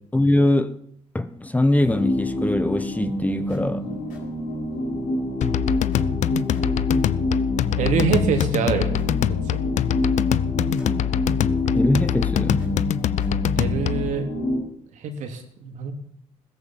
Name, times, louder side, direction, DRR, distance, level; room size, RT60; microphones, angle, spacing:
voice 1, 0.1-0.8 1.1-3.9 11.7-12.7, left 1 dB, 10° left, 1.2 m, -22 dB
sound 1, 1.8-14.6, left 1 dB, 90° left, 7.4 m, -27 dB
sound 2, 5.4-14.1, left 12 dB, 65° left, 0.6 m, -24 dB
voice 2, 7.8-8.9 9.5-9.6 13.6-14.3 15.0-15.9, right 5 dB, 70° right, 3.3 m, -24 dB
16.5 x 14.5 x 6.0 m
cardioid pair, 80°, 13 cm